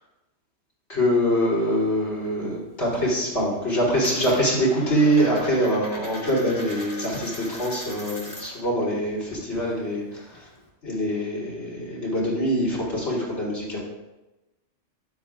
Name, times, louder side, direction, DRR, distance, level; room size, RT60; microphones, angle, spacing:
voice 1, 0.9-10.4 10.8-13.8, equal, 70° left, -5 dB, 4.0 m, -24 dB
Coin (dropping), 1.2-2.3 2.6-3.1 3.4-8.7 9.0-10.7, left 1 dB, 25° left, 2.2 m, -40 dB
13.0 x 11.0 x 2.5 m, 1.0 s
omnidirectional pair, 1.2 m